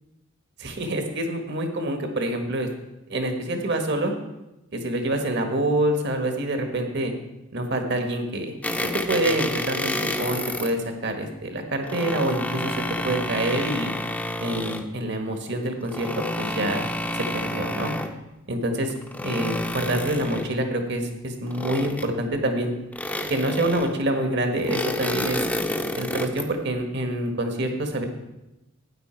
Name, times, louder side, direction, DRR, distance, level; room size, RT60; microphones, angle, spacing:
voice 1, 0.6-2.7 3.1-4.1 4.7-7.1 7.5-8.5 8.8-12.8 13.0-14.0 14.4-16.9 17.1-17.9 18.5-18.9 19.2-22.7 23.3-25.4 25.9-28.1, right 1 dB, 55° right, 5 dB, 1.5 m, -26 dB
sound 1, 8.6-10.7 11.6-14.9 15.8-18.2 18.8-20.6 21.5-22.3 22.9-24.0 24.5-26.5, left 1 dB, 5° left, 0.7 m, -29 dB
12.5 x 9.3 x 4.5 m, 0.96 s
head